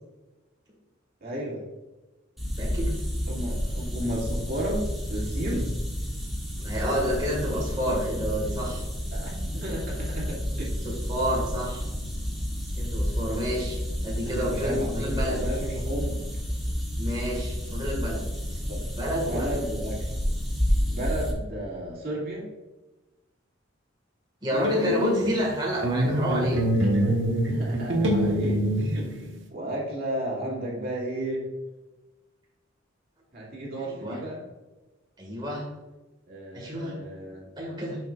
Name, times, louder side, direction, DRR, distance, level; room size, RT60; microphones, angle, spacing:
voice 1, 1.2-1.6 3.3-5.7 9.1-10.9 14.2-16.2 18.7-18.9 19.2-20.2 20.9-22.5 26.8-27.2 27.5-28.7 28.9-31.5 33.3-34.4 36.3-37.4, right 1 dB, 50° right, -3 dB, 2.4 m, -33 dB
sound 1, 2.4-21.3, equal, ahead, 2.3 m, -30 dB
voice 2, 2.6-2.9 6.6-8.8 10.8-11.9 12.8-15.4 17.0-18.2 18.5-18.6 19.0-19.5 24.4-26.6 33.7-34.2 35.2-35.6 36.5-36.9 37.6-38.0, equal, 25° right, -4 dB, 1.8 m, -29 dB
sound 2, 24.5-25.5 25.8-29.4, right 1 dB, 70° right, 1.2 m, -25 dB
11.0 x 6.3 x 2.5 m, 1.1 s
head